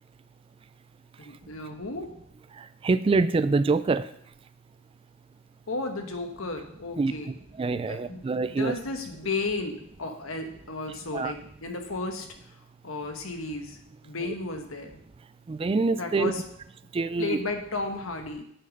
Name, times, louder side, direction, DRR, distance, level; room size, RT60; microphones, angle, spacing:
voice 1, 1.2-2.0 5.7-7.3 7.8-8.2 8.5-12.6 12.8-15.0 15.9-16.4 17.2-18.4, left 3 dB, 90° left, 5 dB, 1.3 m, -34 dB
voice 2, 2.6-4.1 7.0-7.1 7.6-8.8 11.1-11.3 15.5-16.3 16.9-17.4, right 3 dB, 25° right, 14 dB, 0.3 m, -25 dB
7.9 x 6.4 x 5.2 m, 0.72 s
head